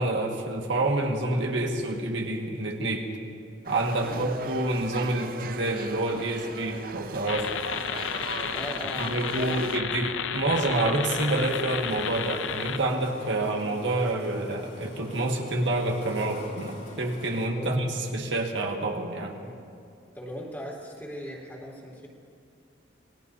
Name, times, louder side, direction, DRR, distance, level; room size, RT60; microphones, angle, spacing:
voice 1, 0.0-3.1 3.7-7.5 9.0-19.3, right 2 dB, 80° right, 1 dB, 1.7 m, -28 dB
sound 1, 3.6-9.8, right 4 dB, 50° right, 0.5 m, -39 dB
sound 2, 7.3-12.8, left 8 dB, 90° left, 0.5 m, -32 dB
voice 2, 8.5-10.1 17.5-17.7 19.4-19.6 20.1-22.1, equal, 10° left, -3 dB, 2.4 m, -40 dB
sound 3, 11.0-17.5, left 1 dB, 55° left, 3.9 m, -45 dB
28.0 x 19.0 x 2.7 m, 2.5 s
head